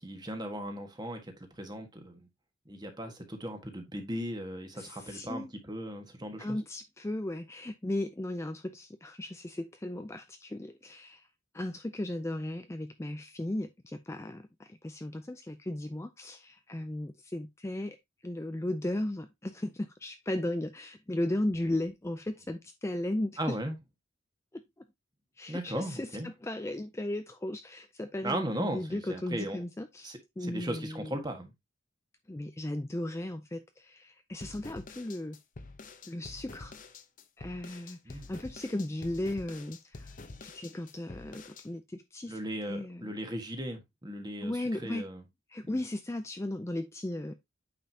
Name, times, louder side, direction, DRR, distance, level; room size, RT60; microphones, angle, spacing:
voice 1, 0.0-2.3 2.6-6.6 23.4-23.7 25.5-26.3 28.2-29.6 30.0-31.5 38.0-38.3 42.3-45.2 45.6-45.8, right 1 dB, 20° right, 1.6 m, -37 dB
voice 2, 4.8-5.5 6.4-11.3 11.5-18.0 18.2-23.4 24.5-24.6 25.4-31.1 32.3-35.4 36.1-36.7 37.4-40.1 40.4-42.4 42.7-43.2 44.4-45.1 45.5-47.3, left 1 dB, 15° left, 0.4 m, -36 dB
sound 1, 34.4-41.7, left 3 dB, 40° left, 0.9 m, -47 dB
8.9 x 5.3 x 2.8 m
head